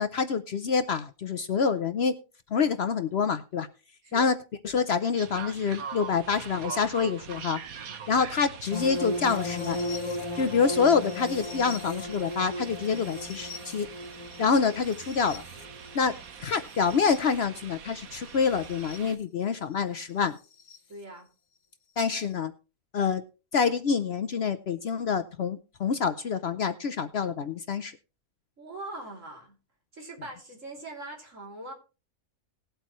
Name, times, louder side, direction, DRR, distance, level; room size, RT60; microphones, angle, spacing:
voice 1, 0.0-2.2 2.5-3.7 4.1-4.4 4.6-7.6 8.1-9.8 10.4-13.9 14.4-15.4 15.9-20.4 22.0-22.5 22.9-23.2 23.5-28.0, left 5 dB, 55° left, 12 dB, 0.8 m, -27 dB
sound 1, 5.2-19.2, right 7 dB, 90° right, 1.5 m, -43 dB
sound 2, 8.7-17.4 18.7-19.0 20.7-20.8, left 1 dB, 85° left, 1.5 m, -36 dB
voice 2, 20.9-21.3 28.6-29.6 29.9-31.7, right 2 dB, 65° right, 1 dB, 3.4 m, -42 dB
19.0 x 8.0 x 3.1 m, 0.33 s
omnidirectional pair, 1.5 m